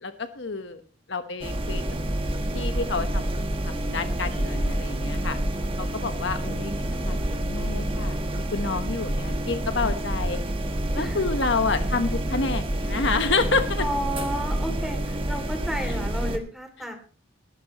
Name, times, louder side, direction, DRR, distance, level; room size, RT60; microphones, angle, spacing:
voice 1, 0.0-0.8 1.1-1.8 2.5-5.4 5.8-6.7 7.0-10.4 10.9-13.8, left 4 dB, 60° left, 8 dB, 1.1 m, -29 dB
sound 1, 1.4-16.4, right 1 dB, 25° right, 1.3 m, -28 dB
voice 2, 13.8-16.9, equal, ahead, 5 dB, 2.6 m, -32 dB
19.5 x 12.5 x 3.0 m, 0.37 s
head